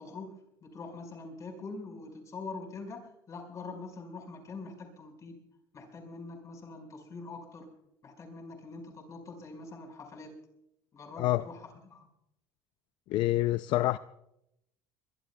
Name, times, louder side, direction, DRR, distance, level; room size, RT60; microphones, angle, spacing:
voice 1, 0.0-5.4 5.7-7.7 8.0-10.4 10.9-12.1, left 3 dB, 35° left, 2 dB, 4.9 m, -44 dB
voice 2, 13.1-14.0, left 16 dB, 60° left, 13 dB, 0.5 m, -27 dB
23.0 x 22.0 x 2.3 m, 0.79 s
cardioid pair, 125°, 9 cm